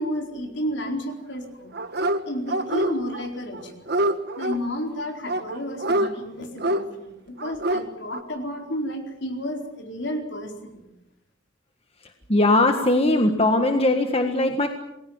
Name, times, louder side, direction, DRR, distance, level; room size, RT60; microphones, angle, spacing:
voice 1, 0.0-1.7 2.3-3.9 4.4-10.8, equal, 60° left, 4 dB, 4.4 m, -31 dB
Dog, 1.7-2.2 2.5-3.3 3.5-4.6 5.3-6.1 6.6-6.8 7.4-7.8 8.1-8.2, right 1 dB, 55° right, 1.5 m, -25 dB
voice 2, 12.3-14.7, left 2 dB, 30° left, 5 dB, 1.6 m, -20 dB
28.5 x 20.5 x 7.3 m, 0.89 s
head